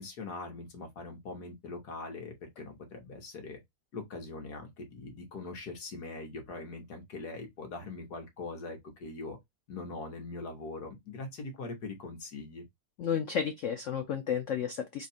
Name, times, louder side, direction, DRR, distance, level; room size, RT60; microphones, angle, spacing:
voice 1, 0.0-3.6 3.9-9.4 9.7-12.6, left 3 dB, 60° left, 1.7 m, -42 dB
voice 2, 13.0-15.1, left 8 dB, 80° left, 0.6 m, -32 dB
3.7 x 2.4 x 4.2 m
omnidirectional pair, 2.0 m